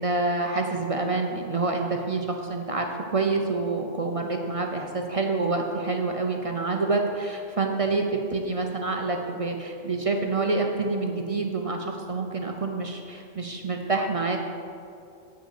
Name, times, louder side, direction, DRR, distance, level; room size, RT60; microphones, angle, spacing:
voice 1, 0.0-14.4, right 3 dB, 35° right, 2 dB, 0.5 m, -27 dB
8.0 x 6.7 x 6.4 m, 2.5 s
omnidirectional pair, 1.4 m